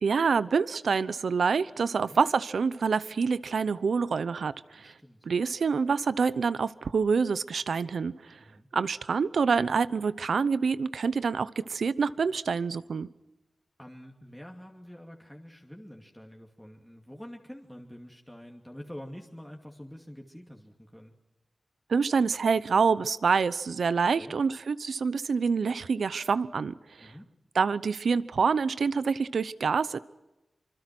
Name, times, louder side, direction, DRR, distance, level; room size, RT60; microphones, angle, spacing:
voice 1, 0.0-4.9 5.3-8.1 8.7-13.1 21.9-27.1 27.5-30.0, right 5 dB, 85° right, 16 dB, 0.8 m, -26 dB
voice 2, 4.7-5.2 8.4-8.7 13.8-21.1 24.1-24.4 27.0-27.3, equal, 5° left, 0 dB, 2.6 m, -46 dB
26.0 x 25.0 x 6.1 m, 1.0 s
wide cardioid pair, 80°, 0 cm